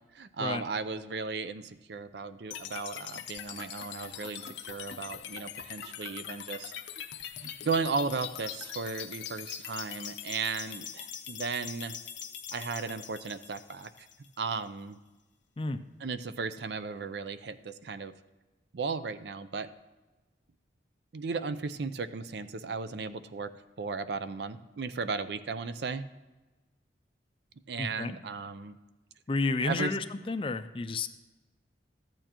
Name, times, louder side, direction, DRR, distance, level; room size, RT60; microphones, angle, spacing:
voice 1, 0.1-6.7 7.4-12.0 12.5-14.1 14.4-15.0 16.0-18.1 18.7-19.7 21.1-23.5 23.8-26.1 27.7-28.8 29.7-29.9, right 4 dB, 65° right, 13 dB, 0.5 m, -35 dB
sound 1, 2.5-14.5, left 9 dB, 80° left, 0.6 m, -42 dB
voice 2, 27.8-28.2 29.3-31.1, left 3 dB, 30° left, 11 dB, 0.4 m, -31 dB
13.5 x 8.8 x 2.9 m, 1.2 s
head